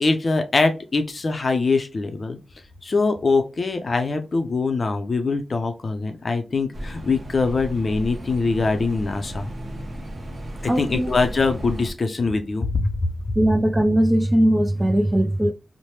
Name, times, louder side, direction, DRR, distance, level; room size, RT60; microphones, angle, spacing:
voice 1, 0.0-2.4 2.8-9.5 10.6-13.1, left 3 dB, 50° left, 0.5 m, -23 dB
sound 1, 6.7-11.9, right 1 dB, 50° right, 0.8 m, -34 dB
voice 2, 10.7-11.1 13.4-15.5, right 1 dB, 15° right, 0.4 m, -19 dB
3.1 x 2.1 x 2.8 m
cardioid pair, 70°, 0 cm